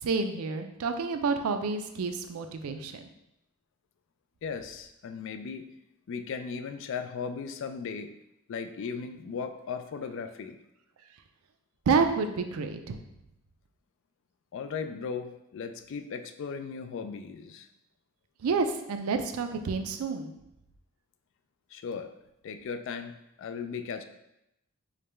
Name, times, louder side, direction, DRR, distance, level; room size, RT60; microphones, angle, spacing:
voice 1, 0.0-3.0 11.9-13.0 18.4-20.3, right 4 dB, 85° right, 7 dB, 0.4 m, -29 dB
voice 2, 4.4-5.7 6.1-8.1 8.5-10.6 14.5-17.7 21.7-22.1 22.4-24.0, left 5 dB, 60° left, 8 dB, 0.3 m, -37 dB
4.8 x 2.2 x 3.2 m, 0.84 s
head